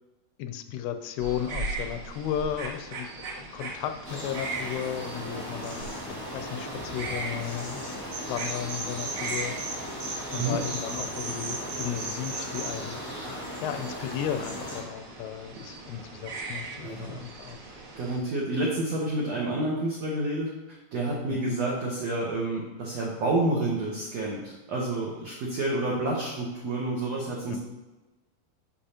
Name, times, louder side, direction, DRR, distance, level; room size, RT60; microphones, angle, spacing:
voice 1, 0.4-3.1 3.3-5.9 6.3-7.8 8.3-9.9 10.3-13.0 13.6-17.6 21.3-21.6 27.5-27.6, left 9 dB, 90° left, 8 dB, 2.6 m, -34 dB
sound 1, 1.2-18.2, right 3 dB, 45° right, 1.7 m, -40 dB
sound 2, 4.0-14.8, equal, 35° left, 0.6 m, -37 dB
sound 3, 8.1-9.7 10.0-12.7, right 4 dB, 65° right, 1.9 m, -35 dB
voice 2, 16.8-17.2 17.9-20.5 20.9-27.6, right 2 dB, 85° right, -4 dB, 1.4 m, -29 dB
8.8 x 4.9 x 2.8 m, 1.1 s
omnidirectional pair, 4.6 m